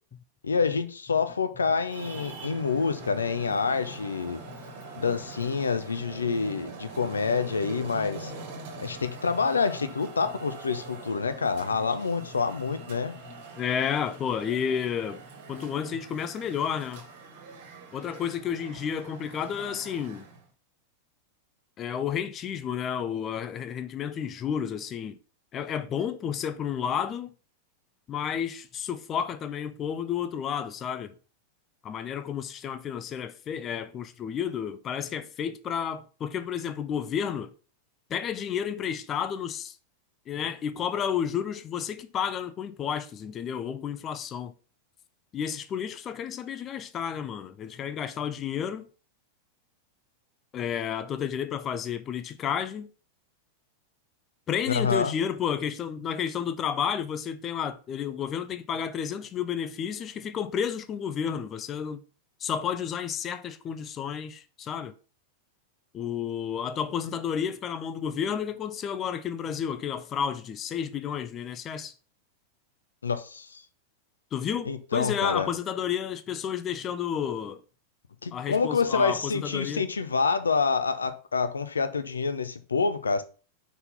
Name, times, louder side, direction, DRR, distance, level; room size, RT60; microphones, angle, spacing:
voice 1, 0.4-4.4 5.0-8.3 8.8-13.1 54.7-55.1 73.0-73.6 74.7-75.5 78.2-83.2, left 5 dB, 75° left, 0.7 m, -27 dB
Traffic noise roadway noise, 1.8-20.5, right 4 dB, 55° right, 1.6 m, -44 dB
voice 2, 13.2-17.1 17.9-20.3 21.8-25.2 25.5-27.3 28.1-31.1 31.8-37.5 38.1-39.8 40.3-44.5 45.3-48.9 50.5-52.9 54.5-62.0 62.4-64.9 65.9-71.9 74.3-77.6 78.3-79.9, left 8 dB, 30° left, 0.5 m, -31 dB
5.5 x 4.1 x 5.5 m
figure-of-eight pair, 90°, 0 cm